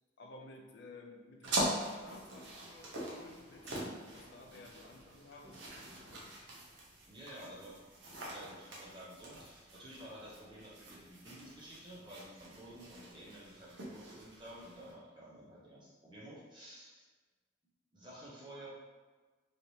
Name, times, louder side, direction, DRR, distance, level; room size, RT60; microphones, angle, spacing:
voice 1, 0.2-6.2, left 2 dB, 55° left, 1 dB, 0.4 m, -54 dB
sound 1, 1.4-14.9, right 1 dB, 65° right, 0.7 m, -43 dB
voice 2, 7.1-17.1 17.9-18.7, right 1 dB, 25° right, -7 dB, 0.5 m, -52 dB
3.2 x 2.8 x 2.6 m, 1.3 s
head